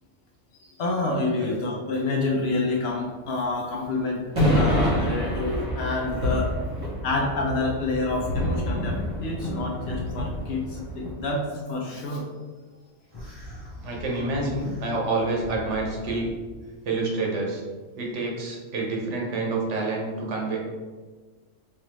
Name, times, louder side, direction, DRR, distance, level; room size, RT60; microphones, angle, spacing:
voice 1, 0.5-4.2 4.5-6.5 7.0-12.3 13.5-13.6, left 2 dB, 60° left, -1 dB, 0.7 m, -28 dB
sound 1, 4.4-11.1, left 1 dB, 30° right, 0.8 m, -27 dB
sound 2, 13.1-16.5, equal, 20° left, 0.8 m, -41 dB
voice 2, 13.8-16.3 16.8-17.6 18.0-20.6, right 2 dB, 65° right, -1 dB, 1.1 m, -28 dB
4.3 x 2.5 x 3.0 m, 1.4 s
omnidirectional pair, 1.3 m